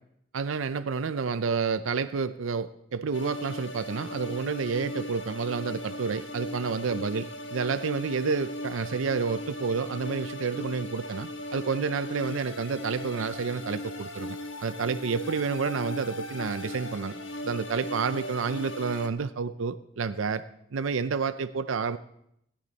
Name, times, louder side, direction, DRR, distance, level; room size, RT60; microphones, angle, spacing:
voice 1, 0.3-17.2 17.4-20.4 20.7-22.0, right 5 dB, 85° right, 11 dB, 0.5 m, -30 dB
sound 1, 3.1-19.1, left 1 dB, 75° left, 1.2 m, -38 dB
17.5 x 10.0 x 4.1 m, 0.75 s
head